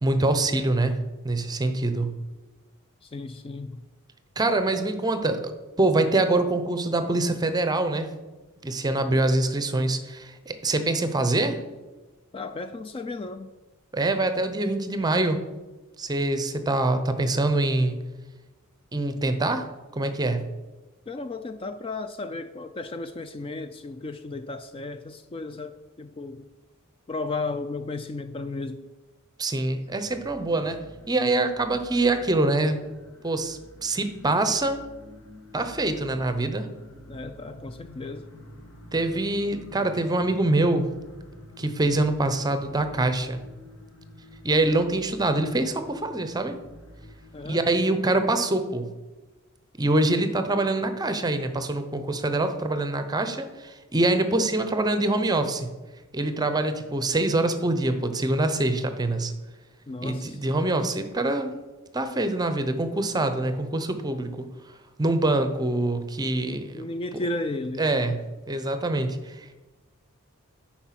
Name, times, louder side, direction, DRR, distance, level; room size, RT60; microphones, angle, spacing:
voice 1, 0.0-1.0 1.2-2.1 4.4-5.5 5.8-8.1 8.6-11.6 13.9-15.4 16.0-18.0 18.9-19.7 19.9-20.4 29.4-30.8 31.1-32.8 33.2-34.8 35.5-36.7 38.9-40.9 41.6-43.4 44.4-46.6 47.5-48.9 49.8-55.7 56.1-59.3 60.0-61.5 61.9-64.5 65.0-66.9 67.8-68.2 68.5-69.5, right 2 dB, 20° right, 9 dB, 0.7 m, -24 dB
voice 2, 3.1-3.8 12.3-13.5 21.1-26.5 27.1-28.8 37.1-38.3 47.3-47.6 59.9-60.4 66.7-67.8, left 2 dB, 25° left, 9 dB, 0.3 m, -34 dB
sound 1, 29.8-47.5, left 1 dB, 85° left, 2.8 m, -48 dB
10.5 x 4.4 x 5.8 m, 1.2 s
head